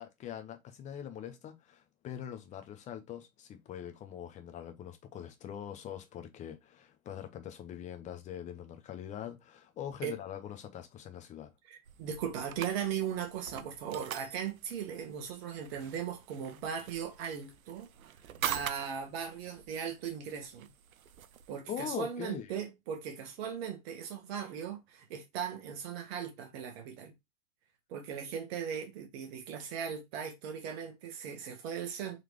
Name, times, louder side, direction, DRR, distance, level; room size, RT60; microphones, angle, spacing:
voice 1, 0.0-11.5 21.7-22.5, left 9 dB, 20° left, 0.7 m, -43 dB
voice 2, 11.7-18.1 18.4-20.7 21.5-27.1 27.9-32.2, right 8 dB, 45° right, 1.2 m, -38 dB
sound 1, 11.9-21.6, right 10 dB, 85° right, 0.7 m, -44 dB
4.0 x 3.2 x 3.1 m
hypercardioid pair, 130°, 41 cm